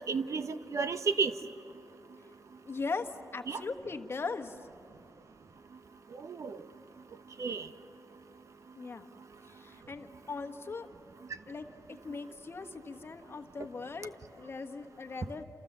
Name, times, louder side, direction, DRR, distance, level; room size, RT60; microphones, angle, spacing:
voice 1, 0.0-1.3 3.5-3.6 6.2-6.6 7.4-7.7, right 4 dB, 55° right, 11 dB, 1.0 m, -32 dB
voice 2, 2.6-4.7 8.7-9.1 9.4-10.9 11.5-15.4, left 4 dB, 40° left, 6 dB, 1.4 m, -39 dB
28.0 x 28.0 x 7.4 m, 2.7 s
wide cardioid pair, 110°, 6 cm